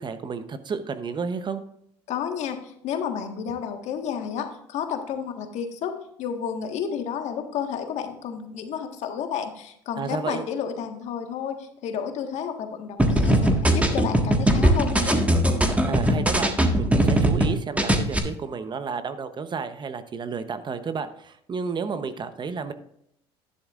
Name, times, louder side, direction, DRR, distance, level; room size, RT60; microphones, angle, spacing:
voice 1, 0.0-1.6 10.0-10.4 15.9-22.7, right 5 dB, 35° right, 11 dB, 0.9 m, -31 dB
voice 2, 2.1-5.9 6.2-15.2, left 7 dB, 60° left, 5 dB, 1.6 m, -31 dB
sound 1, 13.0-17.5 17.8-18.2, right 1 dB, 10° right, 1.6 m, -20 dB
11.0 x 10.5 x 2.5 m, 0.71 s
hypercardioid pair, 75°, 13 cm